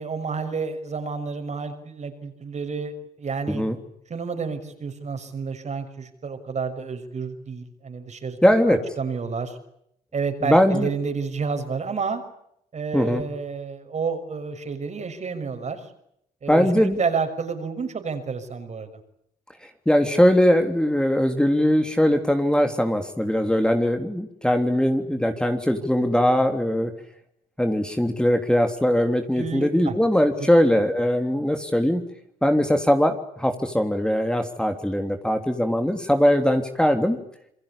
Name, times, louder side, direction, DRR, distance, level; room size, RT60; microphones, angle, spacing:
voice 1, 0.0-3.6 4.1-8.4 8.7-9.6 10.1-12.2 12.7-15.8 16.4-19.0 29.4-30.0, right 5 dB, 45° right, 8 dB, 6.1 m, -30 dB
voice 2, 8.4-8.8 10.4-10.9 12.9-13.2 16.5-17.0 19.8-26.9 27.6-32.0 32.4-37.2, equal, 5° left, 6 dB, 3.3 m, -20 dB
28.5 x 22.5 x 8.6 m, 0.74 s
supercardioid pair, 70°, 17 cm